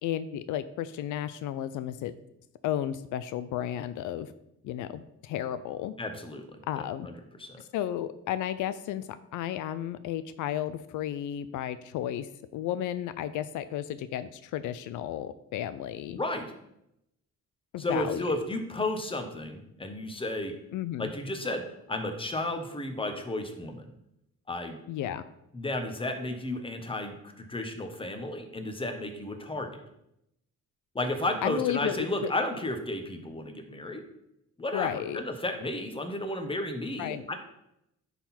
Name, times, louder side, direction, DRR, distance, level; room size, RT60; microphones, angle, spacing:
voice 1, 0.0-2.1 2.6-4.3 4.6-5.9 6.7-7.1 7.7-16.2 17.7-18.2 20.7-21.1 24.9-25.2 31.4-32.3 34.7-35.2 37.0-37.3, left 11 dB, 85° left, 13 dB, 0.5 m, -33 dB
voice 2, 6.0-6.4 6.8-7.1 7.4-7.6 16.1-16.5 17.8-20.5 21.0-21.6 21.9-23.8 24.5-24.8 25.5-29.8 30.9-34.1 34.6-37.3, left 2 dB, 15° left, 5 dB, 1.2 m, -33 dB
10.0 x 4.0 x 4.3 m, 0.82 s
cardioid pair, 90°, 30 cm